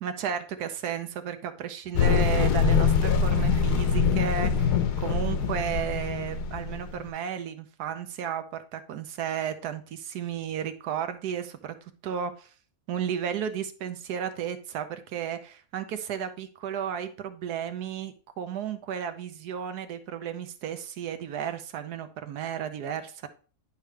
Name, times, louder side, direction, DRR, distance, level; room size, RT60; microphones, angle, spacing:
voice 1, 0.0-11.7 12.0-12.5 12.9-23.3, right 8 dB, 80° right, 9 dB, 1.3 m, -33 dB
sound 1, 1.9-7.1, left 5 dB, 80° left, 1.3 m, -24 dB
10.5 x 5.0 x 3.3 m, 0.39 s
omnidirectional pair, 1.7 m